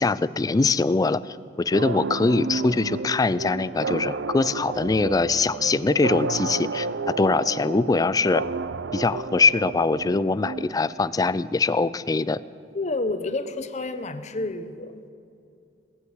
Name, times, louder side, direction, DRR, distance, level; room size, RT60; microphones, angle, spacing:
voice 1, 0.0-8.4 8.9-12.4, left 3 dB, 20° left, 17 dB, 0.3 m, -23 dB
sound 1, 1.7-11.2, right 4 dB, 75° right, 0.5 m, -32 dB
voice 2, 12.7-15.1, left 2 dB, 40° left, 11 dB, 0.8 m, -29 dB
19.5 x 8.4 x 8.1 m, 2.5 s
head